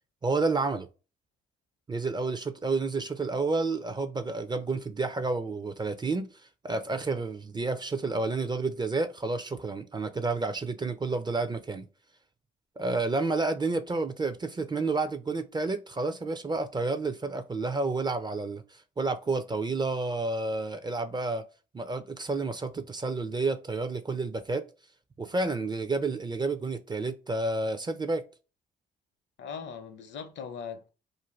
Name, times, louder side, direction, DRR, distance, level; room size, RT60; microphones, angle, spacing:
voice 1, 0.2-0.9 1.9-6.3 6.6-11.9 12.8-21.4 21.7-24.7 25.2-28.2, right 3 dB, 20° right, 0.4 m, -30 dB
voice 2, 29.4-30.9, left 6 dB, 65° left, 0.6 m, -40 dB
2.5 x 2.3 x 3.1 m
supercardioid pair, 55°, 20 cm